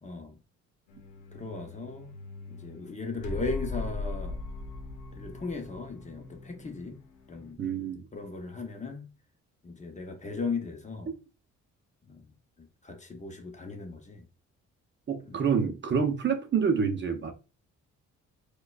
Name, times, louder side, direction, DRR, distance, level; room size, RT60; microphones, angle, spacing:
voice 1, 0.0-0.4 1.3-2.1 2.5-4.4 5.1-7.0 7.3-7.6 8.1-9.1 9.6-11.1 12.1-14.2 15.2-15.4, left 3 dB, 25° left, 0.7 m, -37 dB
sound 1, 0.9-7.5, left 3 dB, 85° left, 0.8 m, -40 dB
voice 2, 7.6-8.0 15.1-17.3, right 6 dB, 40° right, 0.6 m, -27 dB
4.7 x 2.3 x 2.3 m
cardioid pair, 90°, 30 cm